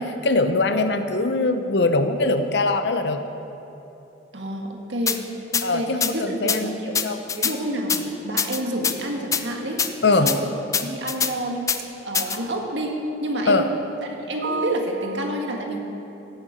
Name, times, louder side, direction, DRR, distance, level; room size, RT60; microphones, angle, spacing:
voice 1, 0.0-3.2 5.6-7.2 10.0-10.4 13.5-13.7, left 3 dB, 65° left, 8 dB, 0.7 m, -22 dB
voice 2, 4.3-5.3 5.5-7.0 7.4-10.5 10.8-11.7 12.0-15.8, right 1 dB, 90° right, 1 dB, 1.6 m, -28 dB
sound 1, 5.1-5.2 5.5-5.6 6.0-6.1 6.5-6.6 6.9-7.5 7.9-8.0 8.4-9.0 9.3-9.4 9.8-9.9 10.3-10.4 10.7-11.3 11.7-11.8 12.1-12.4, left 6 dB, 20° left, 0.4 m, -23 dB
16.5 x 6.9 x 5.1 m, 3.0 s
head